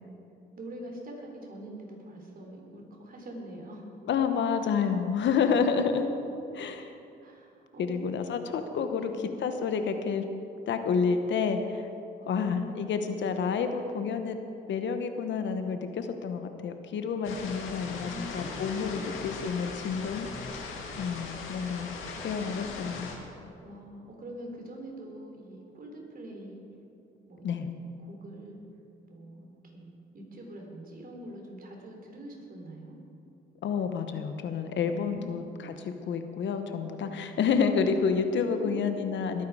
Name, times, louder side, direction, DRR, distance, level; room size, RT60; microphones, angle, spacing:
voice 1, 0.5-3.9 7.2-8.4 8.9-9.2 12.2-13.3 18.1-19.1 23.6-26.6 27.3-28.6 29.1-33.0 35.0-35.8 38.3-39.2, right 1 dB, 45° right, 1 dB, 3.7 m, -44 dB
voice 2, 4.0-6.1 6.5-6.9 7.8-10.2 10.7-11.9 12.3-14.4 14.7-20.3 21.0-21.9 22.2-23.1 27.4-27.7 33.6-39.5, left 6 dB, 65° left, 7 dB, 1.1 m, -29 dB
sound 1, 17.2-23.2, left 4 dB, 90° left, 2.0 m, -39 dB
20.5 x 9.4 x 4.9 m, 2.7 s
cardioid pair, 90°, 20 cm